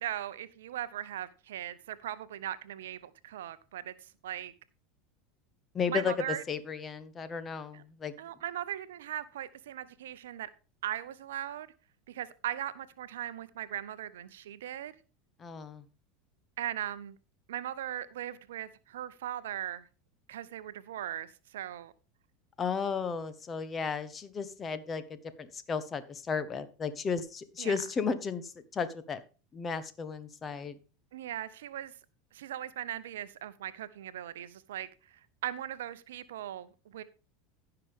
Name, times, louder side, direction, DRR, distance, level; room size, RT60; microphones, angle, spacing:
voice 1, 0.0-4.5 5.9-6.4 7.7-7.8 8.2-10.5 10.8-11.7 12.1-14.9 16.6-17.2 17.5-19.8 20.3-21.9 27.6-27.8 31.1-31.9 32.3-37.0, right 11 dB, 75° right, 0.6 m, -39 dB
voice 2, 5.7-6.1 6.5-8.1 15.4-15.8 22.6-29.2 29.5-30.8, left 5 dB, 30° left, 1.1 m, -34 dB
15.0 x 5.8 x 3.6 m
hypercardioid pair, 85°, 0 cm